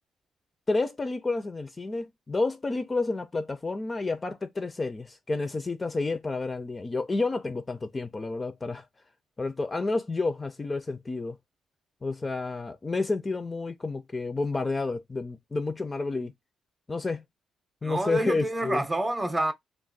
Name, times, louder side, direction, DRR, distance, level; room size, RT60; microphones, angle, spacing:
voice 1, 0.7-8.8 9.4-11.4 12.0-16.3 16.9-17.2 17.8-18.8, left 3 dB, 25° left, 0.4 m, -30 dB
voice 2, 17.8-19.5, right 1 dB, 15° right, 0.6 m, -28 dB
2.4 x 2.0 x 3.9 m
cardioid pair, 90°, 0 cm